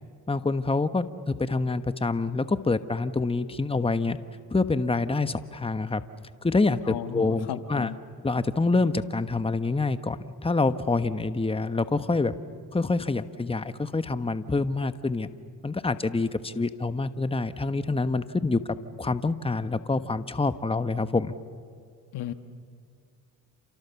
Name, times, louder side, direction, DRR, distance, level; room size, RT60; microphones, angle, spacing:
voice 1, 0.3-4.2 4.5-6.0 6.4-7.9 8.2-12.3 12.7-15.3 15.6-18.6 19.0-21.3, left 3 dB, 15° left, 11 dB, 1.2 m, -26 dB
voice 2, 6.9-8.0 22.1-22.3, left 11 dB, 70° left, 10 dB, 1.5 m, -34 dB
29.0 x 27.5 x 7.1 m, 2.1 s
supercardioid pair, 65°, 40 cm